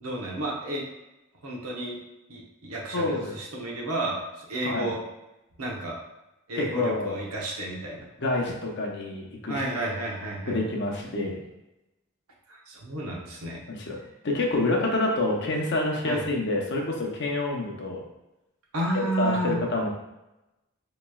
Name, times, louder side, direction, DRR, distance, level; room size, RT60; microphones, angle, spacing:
voice 1, 0.0-0.8 1.4-2.0 2.3-5.0 5.6-6.0 6.5-8.1 9.5-10.6 12.5-13.6 16.0-16.3 18.7-19.6, right 1 dB, 90° right, -2 dB, 0.9 m, -31 dB
voice 2, 6.6-7.2 8.2-9.6 10.5-11.4 13.7-14.0 14.2-18.0 18.9-19.9, left 2 dB, 55° left, 0 dB, 0.7 m, -27 dB
4.9 x 3.0 x 2.3 m, 0.95 s
head